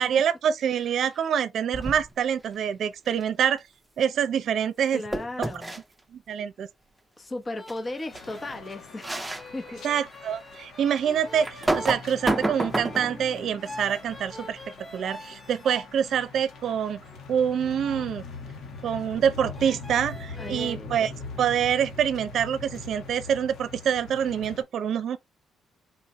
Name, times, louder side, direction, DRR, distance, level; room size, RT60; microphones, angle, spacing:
voice 1, 0.0-3.6 4.0-5.0 6.1-6.7 9.8-14.6 14.9-17.0 17.3-18.2 18.8-21.1 21.4-25.2, right 8 dB, 65° right, 0.6 m, -26 dB
voice 2, 0.6-1.2 4.9-5.8 7.2-9.2 9.5-9.9 20.4-21.1, left 2 dB, 30° left, 1.1 m, -36 dB
sound 1, 1.7-2.2 5.1-5.8 7.7-7.8 8.1-8.3 9.0-9.4 10.0-10.1 11.4-13.2, right 2 dB, 10° right, 0.8 m, -28 dB
sound 2, 7.6-15.9 16.5-19.0 19.5-20.8, left 1 dB, 10° left, 1.3 m, -45 dB
sound 3, 8.1-24.6, left 4 dB, 70° left, 1.5 m, -42 dB
4.3 x 2.7 x 3.1 m
cardioid pair, 90°, 0 cm